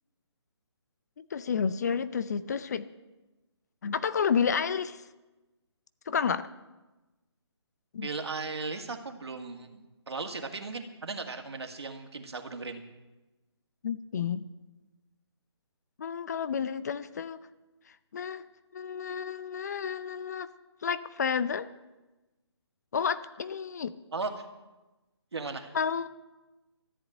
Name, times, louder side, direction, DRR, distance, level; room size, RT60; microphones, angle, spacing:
voice 1, 1.2-2.9 3.8-5.0 6.1-6.5 7.9-8.1 13.8-14.4 16.0-17.4 18.1-18.4 18.7-20.5 20.8-21.7 22.9-23.9 25.7-26.1, left 6 dB, 35° left, 14 dB, 0.6 m, -30 dB
voice 2, 8.0-12.8 24.1-24.3 25.3-25.7, right 4 dB, 65° right, 5 dB, 2.0 m, -37 dB
14.0 x 8.0 x 9.1 m, 1.1 s
figure-of-eight pair, 150°, 15 cm